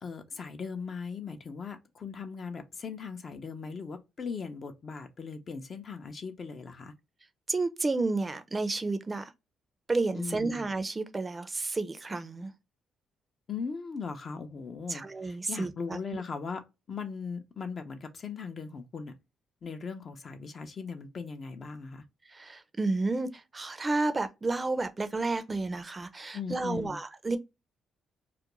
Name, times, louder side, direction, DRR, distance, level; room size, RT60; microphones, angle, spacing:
voice 1, 0.0-6.9 10.1-10.6 13.5-16.6 16.9-19.1 19.6-22.0 26.3-27.0, left 5 dB, 45° left, 0.5 m, -39 dB
voice 2, 7.5-9.3 9.9-12.5 14.9-16.2 22.3-27.4, right 3 dB, 25° right, 0.4 m, -31 dB
2.4 x 2.1 x 2.9 m
cardioid pair, 90°, 0 cm